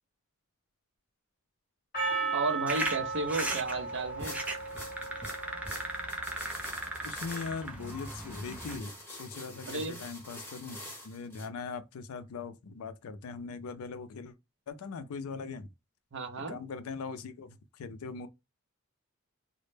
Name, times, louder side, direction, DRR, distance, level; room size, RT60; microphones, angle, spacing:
Percussion, 1.9-6.4, right 4 dB, 40° left, 0.8 m, -36 dB
voice 1, 2.3-4.4 9.7-10.0 16.1-16.6, right 3 dB, 55° right, 0.5 m, -33 dB
sound 1, 2.7-8.8, right 1 dB, 5° right, 0.3 m, -38 dB
sound 2, 4.2-11.5, left 1 dB, 10° left, 0.7 m, -46 dB
voice 2, 7.0-14.3 14.7-15.7 16.4-18.3, left 4 dB, 75° left, 0.4 m, -40 dB
2.1 x 2.0 x 3.1 m
head